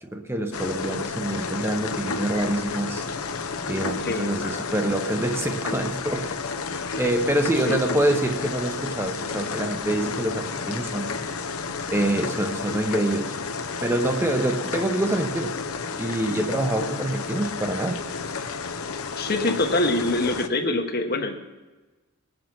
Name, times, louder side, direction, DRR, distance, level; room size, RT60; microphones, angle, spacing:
voice 1, 0.0-3.0 3.6-6.3 6.9-11.1 11.9-13.3 13.8-15.5 16.0-18.0, right 1 dB, 10° right, 5 dB, 0.8 m, -26 dB
sound 1, 0.5-20.5, left 4 dB, 80° left, 0.9 m, -31 dB
voice 2, 4.0-4.7 6.8-7.0 7.6-8.2 19.2-21.4, left 2 dB, 45° left, 6 dB, 1.1 m, -26 dB
19.5 x 7.8 x 6.0 m, 1.2 s
head